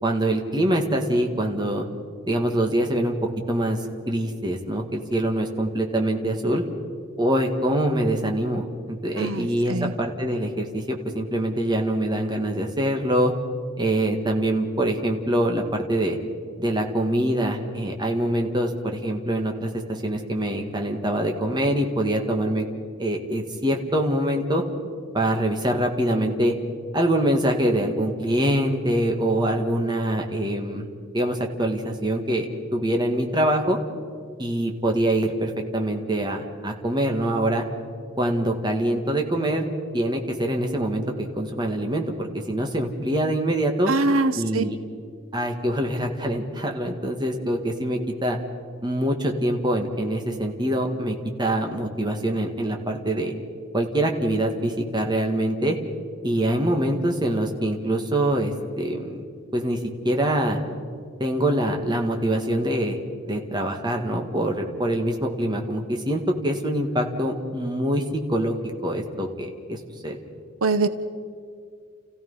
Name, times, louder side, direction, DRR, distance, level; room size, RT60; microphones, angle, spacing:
voice 1, 0.0-1.9 2.3-3.2 3.5-3.8 4.1-6.6 7.2-13.3 13.8-16.2 16.6-22.7 23.0-24.6 25.1-26.5 26.9-30.9 31.1-32.5 32.7-33.8 34.4-37.6 38.2-39.6 39.9-43.9 44.4-44.8 45.3-48.4 48.8-53.3 53.7-55.8 56.2-59.2 59.5-59.8 60.0-60.6 61.2-63.0 63.2-68.5 68.8-70.2, right 1 dB, 20° right, 2 dB, 1.8 m, -24 dB
voice 2, 9.2-9.9 43.9-44.6 70.6-70.9, right 3 dB, 80° right, 11 dB, 0.9 m, -23 dB
29.5 x 15.5 x 5.6 m, 2.1 s
head